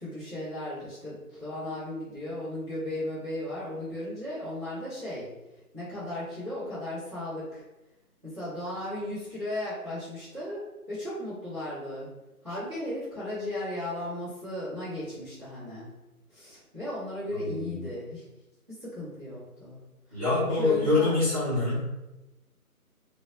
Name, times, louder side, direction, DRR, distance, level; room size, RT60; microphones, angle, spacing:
voice 1, 0.0-5.3 5.7-7.6 8.2-12.1 12.4-15.9 16.3-18.2 18.7-19.8 20.1-21.2, left 1 dB, 20° right, -14 dB, 0.8 m, -36 dB
voice 2, 17.4-17.8 20.1-21.9, left 2 dB, 25° left, -12 dB, 0.7 m, -25 dB
2.0 x 2.0 x 3.7 m, 1.0 s
figure-of-eight pair, 165°, 45 cm